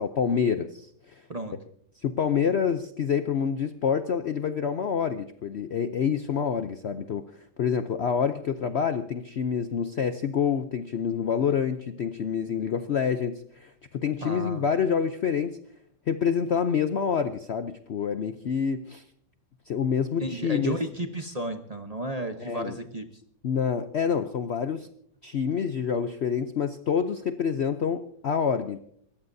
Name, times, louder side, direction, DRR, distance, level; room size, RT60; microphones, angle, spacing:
voice 1, 0.0-1.2 2.0-15.6 16.1-19.0 19.7-20.8 22.4-22.8 23.4-24.9 25.2-28.8, left 7 dB, 85° left, 9 dB, 0.5 m, -27 dB
voice 2, 14.2-14.6 20.2-23.2, right 1 dB, 30° right, 6 dB, 0.7 m, -33 dB
28.5 x 14.5 x 2.7 m, 0.66 s
omnidirectional pair, 2.0 m